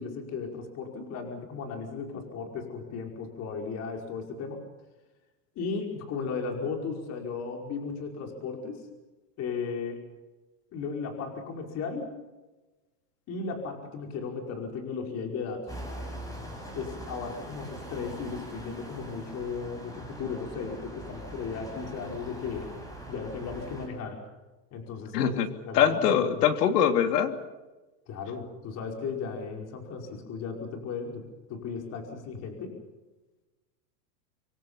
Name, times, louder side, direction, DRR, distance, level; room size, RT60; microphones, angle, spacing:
voice 1, 0.0-4.6 5.6-8.8 9.4-10.0 10.7-12.2 13.3-15.7 16.8-22.7 23.1-24.2 24.7-25.3 25.7-26.4 28.1-32.7, left 5 dB, 30° left, 2 dB, 5.3 m, -35 dB
sound 1, 15.7-23.9, equal, 5° left, 6.5 m, -42 dB
voice 2, 25.1-25.5 25.7-27.4, left 8 dB, 75° left, 6 dB, 3.2 m, -23 dB
27.0 x 23.5 x 5.6 m, 1.1 s
supercardioid pair, 150°, 48 cm